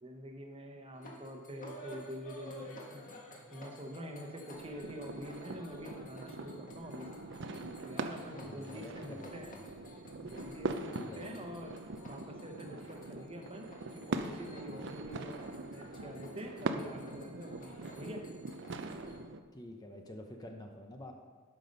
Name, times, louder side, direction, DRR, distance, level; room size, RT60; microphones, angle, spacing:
voice 1, 0.0-3.2 3.5-7.1 7.8-9.5 10.3-11.8 12.1-13.7 13.9-18.2, equal, 25° right, 3 dB, 1.1 m, -46 dB
sound 1, 0.9-19.2, equal, 40° left, 1.6 m, -53 dB
sound 2, 4.5-19.4, right 3 dB, 55° right, 0.6 m, -42 dB
voice 2, 8.3-9.6 11.0-11.3 19.5-21.1, left 1 dB, 20° left, 3 dB, 0.7 m, -48 dB
12.0 x 5.9 x 5.3 m, 1.5 s
head